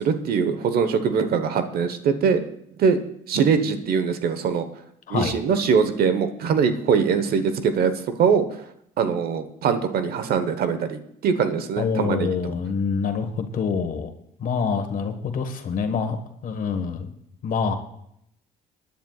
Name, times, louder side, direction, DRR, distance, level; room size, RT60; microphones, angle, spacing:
voice 1, 0.0-2.4 2.8-3.0 3.3-4.7 5.1-7.9 8.2-8.5 9.0-12.3, right 6 dB, 65° right, 9 dB, 1.2 m, -22 dB
voice 2, 11.8-14.1 14.4-16.2 16.4-17.0 17.4-17.8, left 5 dB, 55° left, 6 dB, 1.6 m, -26 dB
24.0 x 10.5 x 2.4 m, 0.73 s
cardioid pair, 110°, 17 cm